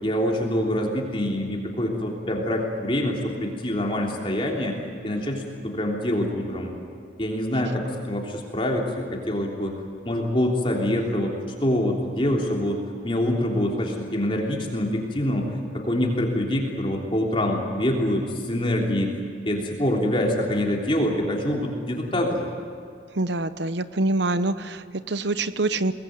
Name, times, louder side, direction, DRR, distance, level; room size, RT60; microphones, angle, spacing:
voice 1, 0.0-4.7 5.0-6.7 7.2-9.8 10.0-11.3 11.6-19.1 19.4-22.5, left 1 dB, 30° left, 0 dB, 3.3 m, -25 dB
voice 2, 23.1-25.9, right 2 dB, 65° right, 13 dB, 1.0 m, -25 dB
23.5 x 19.5 x 9.4 m, 2.4 s
head